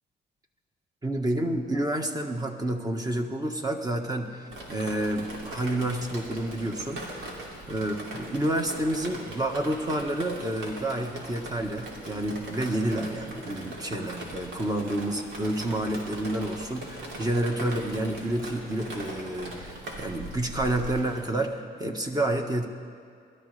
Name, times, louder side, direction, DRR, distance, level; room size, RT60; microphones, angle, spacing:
voice 1, 1.0-7.4 7.7-22.7, right 1 dB, 20° right, 4 dB, 1.5 m, -29 dB
Drip, 4.5-21.2, right 1 dB, 85° right, 2.8 m, -40 dB
21.5 x 12.5 x 3.4 m, 2.3 s
cardioid pair, 90°, 20 cm